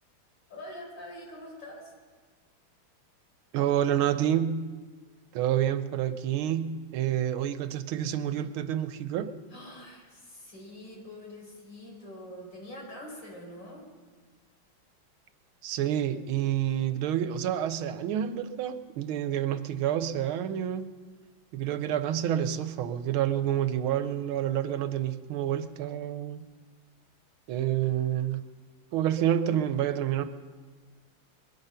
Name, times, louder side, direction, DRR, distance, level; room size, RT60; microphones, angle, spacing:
voice 1, 0.5-1.9 9.5-13.8, left 1 dB, 60° left, -2 dB, 5.2 m, -44 dB
voice 2, 3.5-4.6 5.3-9.3 15.6-20.9 21.5-26.4 27.5-28.4 28.9-30.2, right 10 dB, 85° right, 11 dB, 1.6 m, -28 dB
22.0 x 11.0 x 5.7 m, 1.5 s
omnidirectional pair, 2.3 m